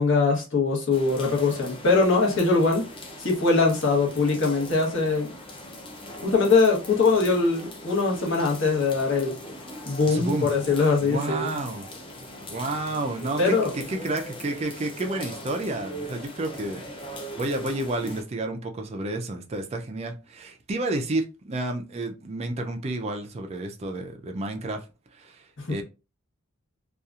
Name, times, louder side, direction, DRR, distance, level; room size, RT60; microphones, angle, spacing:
voice 1, 0.0-2.8 3.2-5.3 6.2-9.3 9.9-11.5 13.4-13.7 25.6-25.8, left 4 dB, 60° left, 1.0 m, -22 dB
sound 1, 0.9-18.2, equal, 25° left, 0.5 m, -40 dB
voice 2, 10.1-10.5 11.0-11.9 12.5-16.8 17.4-24.8 25.1-25.4 25.7-25.8, right 2 dB, 30° right, 0.4 m, -30 dB
2.8 x 2.3 x 2.4 m
head